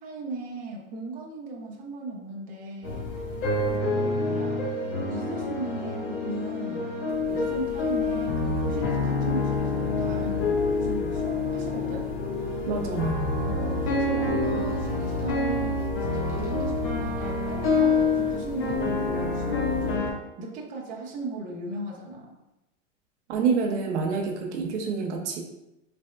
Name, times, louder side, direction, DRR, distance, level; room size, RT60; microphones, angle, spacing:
voice 1, 0.0-3.1 3.7-4.6 5.1-6.8 7.3-12.1 13.4-15.8 16.1-20.1 20.4-22.3, right 2 dB, 20° right, -2 dB, 0.6 m, -37 dB
sound 1, 2.8-20.1, left 3 dB, 50° left, 1.2 m, -27 dB
voice 2, 12.7-13.2 23.3-25.4, right 5 dB, 70° right, 2 dB, 0.8 m, -27 dB
3.4 x 3.2 x 2.2 m, 0.91 s
hypercardioid pair, 120°, 36 cm